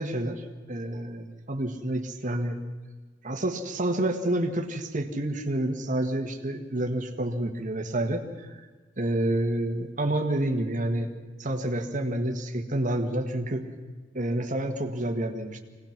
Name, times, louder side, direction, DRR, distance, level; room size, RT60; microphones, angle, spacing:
voice 1, 0.0-2.6 3.2-8.5 9.0-11.1 11.4-13.7 14.1-15.6, right 1 dB, 45° right, 5 dB, 1.7 m, -29 dB
24.5 x 18.5 x 6.0 m, 1.3 s
head